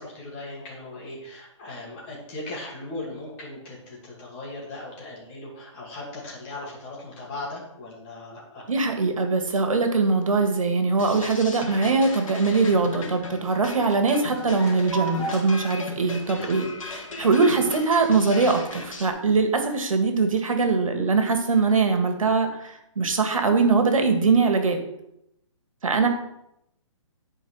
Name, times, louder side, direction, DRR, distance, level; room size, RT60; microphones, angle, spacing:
voice 1, 0.0-8.6 11.8-11.9 16.4-16.5 22.2-22.3, left 2 dB, 20° left, -4 dB, 2.5 m, -38 dB
voice 2, 8.7-16.7 16.9-24.8 25.8-26.1, right 4 dB, 85° right, 6 dB, 1.9 m, -22 dB
sound 1, 10.9-18.2, right 2 dB, 5° right, 2.1 m, -39 dB
sound 2, 11.0-19.1, left 3 dB, 85° left, 2.2 m, -37 dB
11.0 x 4.9 x 4.8 m, 0.81 s
hypercardioid pair, 170°, 17 cm